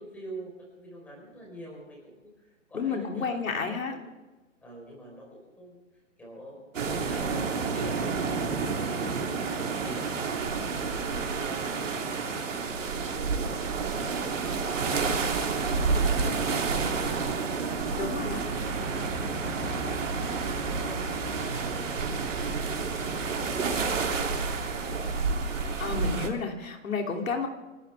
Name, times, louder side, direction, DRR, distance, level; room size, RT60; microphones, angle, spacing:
voice 1, 0.0-4.2 4.6-5.8 6.2-9.5 9.8-11.9 18.2-21.4 21.7-25.1, right 1 dB, 5° left, -3 dB, 4.5 m, -47 dB
voice 2, 2.7-3.9 18.0-18.4 25.6-27.5, left 5 dB, 85° left, 2 dB, 3.2 m, -31 dB
sound 1, 6.7-26.3, right 4 dB, 70° right, 3.2 m, -30 dB
sound 2, 18.5-25.3, right 2 dB, 25° right, 3.2 m, -38 dB
29.0 x 12.5 x 3.6 m, 1.2 s
hypercardioid pair, 170°, 39 cm